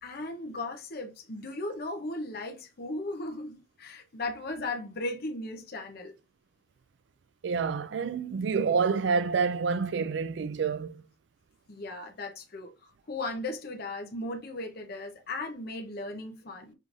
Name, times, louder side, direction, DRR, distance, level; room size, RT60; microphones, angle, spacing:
voice 1, 0.0-6.1 11.7-16.7, left 2 dB, 55° left, 0.8 m, -37 dB
voice 2, 7.4-11.0, right 5 dB, 65° right, 0.4 m, -28 dB
5.5 x 3.1 x 2.5 m
head